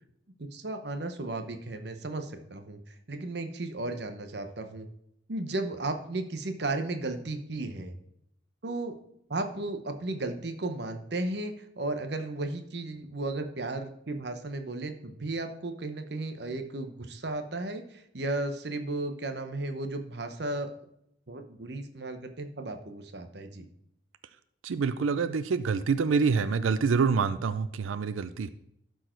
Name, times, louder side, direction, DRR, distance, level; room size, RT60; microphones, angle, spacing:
voice 1, 0.4-4.9 5.3-7.9 8.6-8.9 9.3-20.7 21.3-23.6, right 2 dB, 55° right, 7 dB, 0.9 m, -34 dB
voice 2, 24.6-28.5, right 5 dB, 90° right, 13 dB, 0.4 m, -26 dB
12.0 x 4.7 x 4.4 m, 0.75 s
head